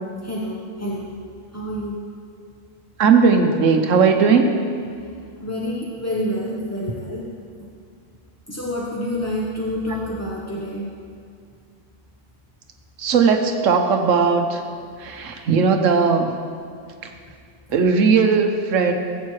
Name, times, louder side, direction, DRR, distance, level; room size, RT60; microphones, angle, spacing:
voice 1, 0.2-1.2 1.5-2.0 5.4-7.3 8.5-10.9, left 1 dB, 15° left, -4 dB, 0.6 m, -28 dB
voice 2, 3.0-4.5 13.0-14.6 15.0-16.3 17.0-17.1 17.7-18.9, right 5 dB, 70° right, 5 dB, 1.2 m, -17 dB
14.5 x 8.3 x 3.2 m, 2.2 s
omnidirectional pair, 1.4 m